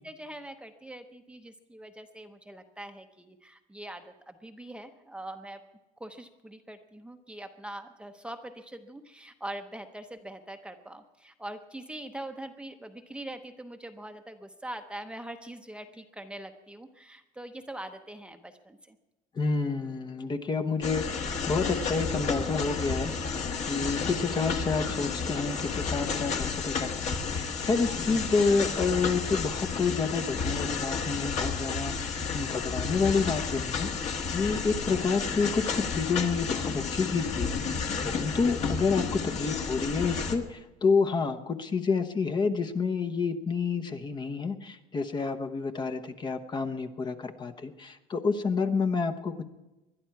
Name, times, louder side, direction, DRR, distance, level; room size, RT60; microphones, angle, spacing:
voice 1, 0.0-5.6 6.0-19.0, right 1 dB, 5° right, 6 dB, 0.8 m, -43 dB
voice 2, 19.4-23.1 23.6-37.8 38.0-49.4, left 4 dB, 30° left, 8 dB, 1.0 m, -29 dB
sound 1, 20.8-40.4, left 5 dB, 45° left, 1.6 m, -31 dB
20.5 x 11.5 x 4.7 m, 1.0 s
cardioid pair, 130°, 16 cm